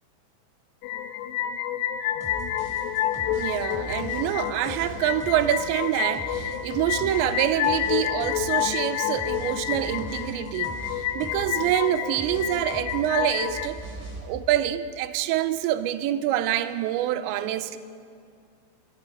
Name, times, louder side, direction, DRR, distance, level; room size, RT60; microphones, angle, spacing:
sound 1, 0.8-13.7, left 11 dB, 80° left, 2.6 m, -29 dB
sound 2, 2.2-13.0 13.3-14.2, right 1 dB, 5° right, 3.3 m, -40 dB
voice 1, 3.3-13.8 14.2-17.8, right 12 dB, 80° right, 2.7 m, -26 dB
26.5 x 18.5 x 5.3 m
omnidirectional pair, 5.7 m